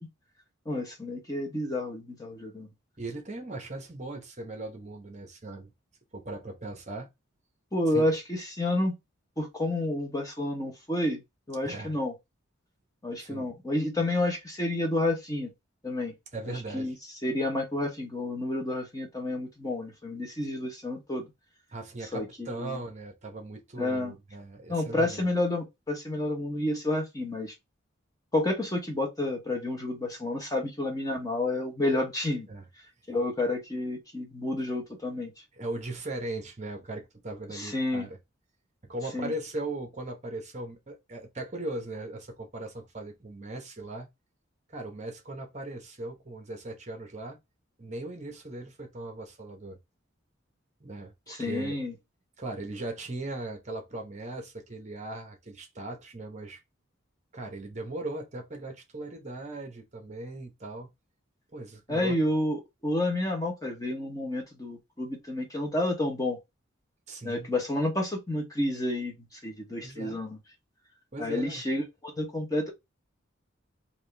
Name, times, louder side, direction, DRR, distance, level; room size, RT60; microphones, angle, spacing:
voice 1, 0.7-2.7 7.7-8.9 9.4-11.2 11.5-12.1 13.0-15.5 15.8-16.1 16.7-16.9 17.2-21.3 22.1-22.8 23.8-24.1 24.7-27.5 28.3-32.5 33.1-35.3 37.5-38.0 39.1-39.3 51.3-51.9 61.9-62.6 62.8-66.4 67.2-70.4 71.2-72.7, left 1 dB, 15° left, 0.9 m, -30 dB
voice 2, 3.0-5.7 6.1-7.1 7.9-8.1 11.6-12.0 13.2-13.5 16.3-17.0 20.6-20.7 21.7-25.3 32.5-32.7 35.5-38.2 38.8-44.1 44.7-47.4 47.8-49.8 50.8-51.7 52.4-56.6 57.3-60.9 61.5-62.2 67.1-67.5 69.8-70.2 71.1-71.6, right 2 dB, 35° right, 0.9 m, -38 dB
3.6 x 2.6 x 3.3 m
head